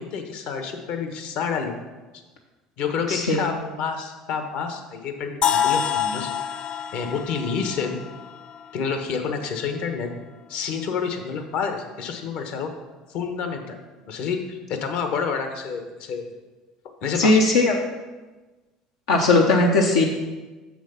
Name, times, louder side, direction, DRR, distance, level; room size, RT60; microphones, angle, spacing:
voice 1, 0.0-1.7 2.8-6.3 6.9-8.0 8.7-10.1 10.5-12.7 13.1-13.8 14.1-16.3 17.0-17.4, left 6 dB, 65° left, 6 dB, 1.1 m, -28 dB
voice 2, 3.1-3.4 17.2-17.8 19.1-20.1, left 3 dB, 90° left, 0 dB, 0.8 m, -18 dB
sound 1, 5.4-9.3, left 8 dB, 40° left, 0.4 m, -27 dB
7.0 x 6.0 x 5.6 m, 1.2 s
supercardioid pair, 85°, 2 cm